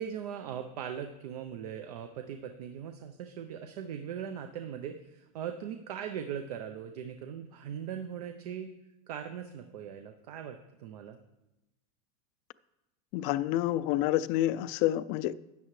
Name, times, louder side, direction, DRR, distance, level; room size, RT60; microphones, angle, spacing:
voice 1, 0.0-8.7 9.1-11.2, right 8 dB, 85° right, 0.7 m, -40 dB
voice 2, 13.1-15.3, left 14 dB, 45° left, 0.4 m, -28 dB
12.5 x 8.7 x 3.2 m
supercardioid pair, 150°, 19 cm